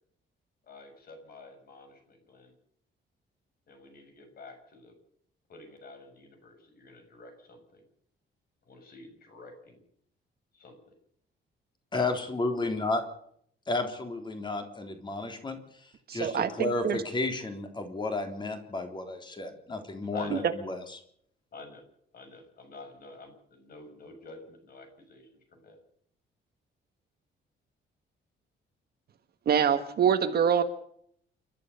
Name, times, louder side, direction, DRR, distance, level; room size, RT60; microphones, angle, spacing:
voice 1, 0.7-2.5 3.7-4.9 5.5-7.8 8.6-9.8 10.5-10.9 20.1-20.4 21.5-21.8 22.1-25.8, left 3 dB, 50° left, 6 dB, 6.8 m, -49 dB
voice 2, 11.9-13.0 13.7-15.6 16.1-21.0, left 2 dB, 25° left, 5 dB, 3.6 m, -32 dB
voice 3, 16.1-17.0 20.3-20.4 29.4-30.6, right 8 dB, 50° right, 6 dB, 1.6 m, -25 dB
29.5 x 13.0 x 6.9 m, 0.66 s
cardioid pair, 170°, 20 cm